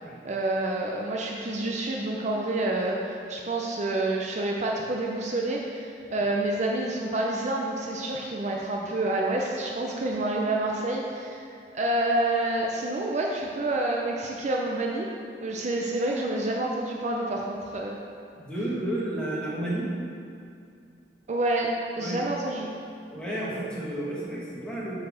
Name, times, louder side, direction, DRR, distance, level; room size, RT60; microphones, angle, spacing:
voice 1, 0.2-15.1 15.4-18.0 21.3-21.7 22.0-22.7, right 2 dB, 40° right, -1 dB, 0.6 m, -28 dB
voice 2, 18.4-19.9 22.0-22.2 23.1-25.0, right 1 dB, 5° left, -7 dB, 1.5 m, -31 dB
7.0 x 4.1 x 6.3 m, 2.4 s
head